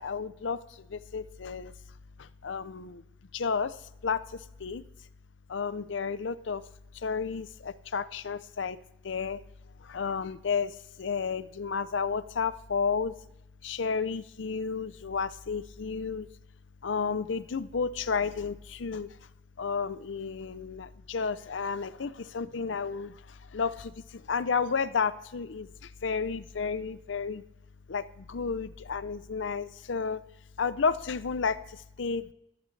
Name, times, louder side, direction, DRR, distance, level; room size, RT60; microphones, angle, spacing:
voice 1, 0.0-1.7 2.2-3.0 3.3-3.8 4.0-4.8 5.5-6.6 7.0-8.8 9.0-9.4 9.8-13.1 13.6-16.3 16.8-19.1 19.6-27.4 27.9-30.2 30.6-32.3, left 5 dB, 85° left, 15 dB, 0.6 m, -32 dB
14.5 x 14.0 x 3.3 m, 0.82 s
head